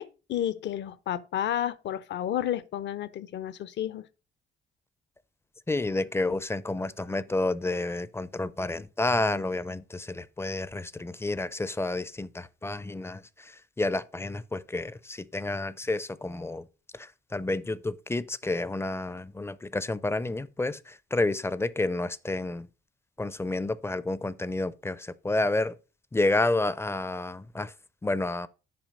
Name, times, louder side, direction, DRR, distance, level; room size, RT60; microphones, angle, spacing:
voice 1, 0.0-4.0, left 11 dB, 65° left, 0.6 m, -31 dB
voice 2, 5.7-16.7 16.9-22.7 23.2-25.8 26.1-27.7 28.0-28.5, left 2 dB, 10° left, 0.4 m, -30 dB
7.7 x 5.1 x 5.1 m
cardioid pair, 90°, 20 cm